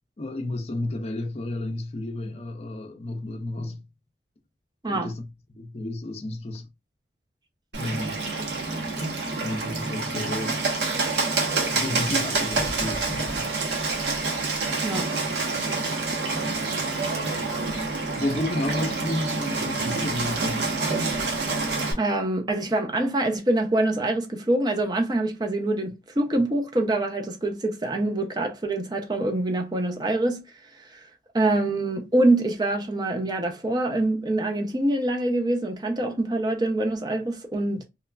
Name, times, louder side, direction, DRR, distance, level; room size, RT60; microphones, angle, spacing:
voice 1, 0.2-3.8 4.9-6.7 7.8-8.2 9.4-10.6 11.7-13.5 18.2-20.7, left 2 dB, 35° left, 0.4 m, -32 dB
Bird, 7.7-21.9, right 3 dB, 80° right, 0.9 m, -27 dB
voice 2, 14.8-15.1 22.0-30.4 30.8-31.0 31.3-37.8, right 2 dB, 25° right, 0.5 m, -25 dB
3.0 x 2.3 x 2.2 m
head